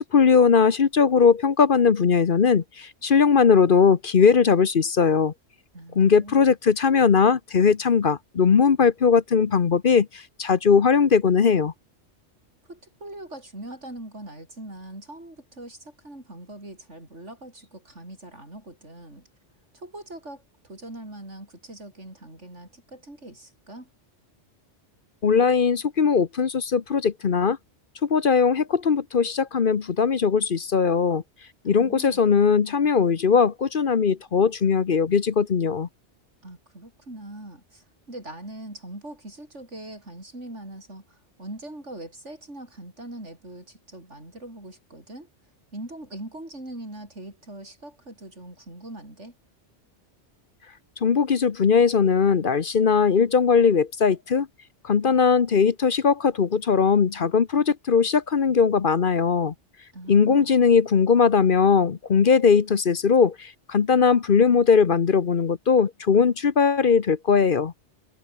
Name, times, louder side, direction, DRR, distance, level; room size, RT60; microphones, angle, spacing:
voice 1, 0.1-5.3 6.0-11.7 25.2-27.6 28.0-31.2 31.7-35.9 51.0-54.5 54.8-59.5 60.1-67.7, left 6 dB, 50° left, 1.1 m, -19 dB
voice 2, 5.7-6.5 12.7-19.2 19.7-23.9 31.6-32.4 36.4-45.3 45.7-49.4 59.9-60.7, right 1 dB, 85° right, 8.4 m, -41 dB
omnidirectional pair, 1.2 m